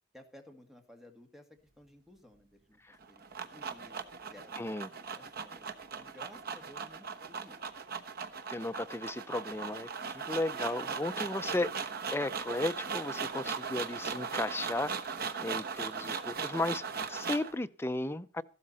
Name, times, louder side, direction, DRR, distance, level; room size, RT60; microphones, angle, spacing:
voice 1, 0.1-1.5 1.8-2.8 3.1-4.0 4.3-4.8 5.1-7.6, left 1 dB, ahead, 2.0 m, -56 dB
sound 1, 2.9-17.5, right 5 dB, 55° right, 1.1 m, -38 dB
voice 2, 4.6-4.9 8.5-9.9 10.1-11.7 12.1-14.9 15.4-16.8 17.1-18.4, left 2 dB, 15° left, 0.6 m, -34 dB
14.5 x 12.5 x 4.2 m
head